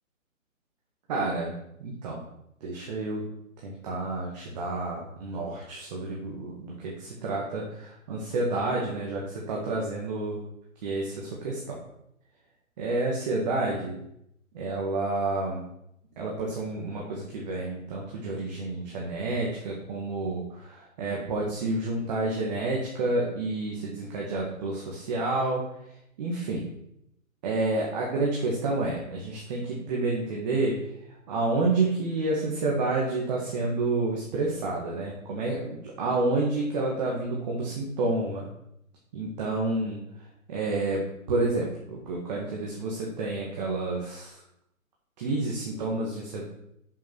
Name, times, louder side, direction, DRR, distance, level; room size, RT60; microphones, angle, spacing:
voice 1, 1.1-1.5 1.8-2.2 2.6-3.2 3.6-10.4 10.8-11.8 12.8-14.0 14.5-15.6 16.2-25.6 26.2-26.7 27.4-30.8 31.3-38.4 39.1-40.0 40.5-41.0 41.3-44.4 45.2-46.4, right 2 dB, 30° right, -2 dB, 1.9 m, -29 dB
7.4 x 7.0 x 6.1 m, 0.77 s
hypercardioid pair, 155°, 42 cm